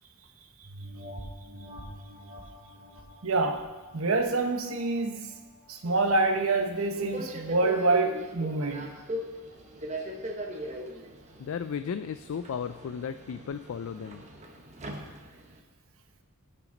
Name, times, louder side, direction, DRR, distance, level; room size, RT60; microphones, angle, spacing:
sound 1, 0.6-5.6 6.1-6.2, equal, 55° right, 2.3 m, -46 dB
voice 1, 3.2-3.7 3.9-5.3 5.7-8.9, right 3 dB, 70° right, 1.0 m, -26 dB
Subway metro underground, 5.9-15.6, equal, 35° right, 1.1 m, -40 dB
voice 2, 11.4-14.2, left 7 dB, 70° left, 0.3 m, -35 dB
17.0 x 6.0 x 3.9 m
head